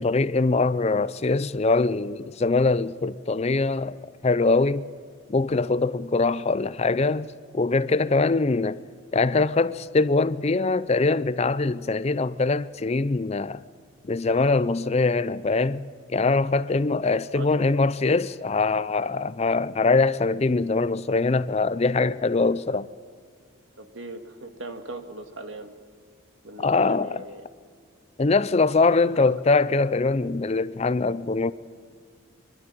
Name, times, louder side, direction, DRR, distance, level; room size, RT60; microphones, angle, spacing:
voice 1, 0.0-4.8 5.3-8.8 9.1-13.6 14.1-22.9 26.6-27.2 28.2-31.5, left 3 dB, 30° left, 0.5 m, -23 dB
voice 2, 17.3-17.7 23.8-25.7 26.4-27.4 29.3-29.4, right 2 dB, 75° right, 1.9 m, -39 dB
24.5 x 12.5 x 8.9 m
head